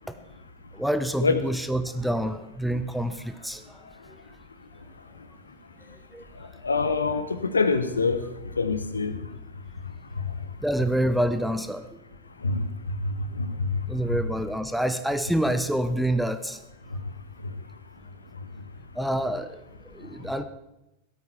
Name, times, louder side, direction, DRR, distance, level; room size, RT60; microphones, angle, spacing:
voice 1, 0.7-3.8 6.1-6.2 6.5-6.6 10.6-12.0 13.9-16.6 18.9-19.6 19.9-20.4, right 1 dB, ahead, 10 dB, 0.8 m, -27 dB
voice 2, 6.6-8.2 8.6-9.2 10.2-10.3 12.4-13.7 14.1-14.2, left 4 dB, 75° left, 11 dB, 1.2 m, -25 dB
17.5 x 13.0 x 4.5 m, 0.91 s
figure-of-eight pair, 90°, 0 cm